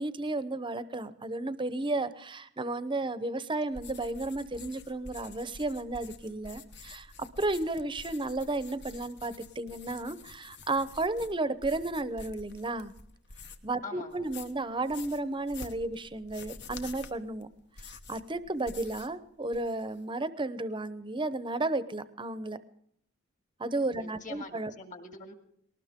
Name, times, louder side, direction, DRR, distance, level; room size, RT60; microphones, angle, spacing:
voice 1, 0.0-7.1 7.4-12.9 13.6-17.5 17.8-22.6 23.6-24.7, right 2 dB, 25° right, 14 dB, 0.8 m, -33 dB
sound 1, 3.7-13.8 14.1-19.2 19.4-20.0, left 4 dB, 55° left, 1.2 m, -48 dB
voice 2, 13.8-14.3 24.0-25.3, left 3 dB, 40° left, 7 dB, 2.3 m, -44 dB
19.5 x 19.0 x 3.7 m, 0.71 s
head